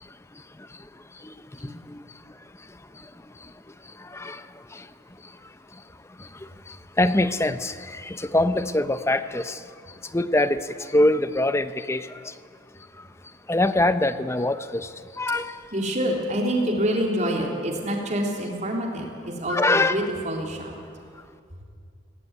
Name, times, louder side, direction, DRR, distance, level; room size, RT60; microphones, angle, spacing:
voice 1, 1.6-2.0 4.0-4.4 4.7-4.8 6.2-9.6 10.1-12.3 13.5-14.9 15.2-15.6 19.5-20.0, left 2 dB, 15° left, 11 dB, 0.7 m, -24 dB
voice 2, 15.7-20.7, equal, 40° right, 0 dB, 3.6 m, -26 dB
19.5 x 17.5 x 9.7 m, 2.3 s
head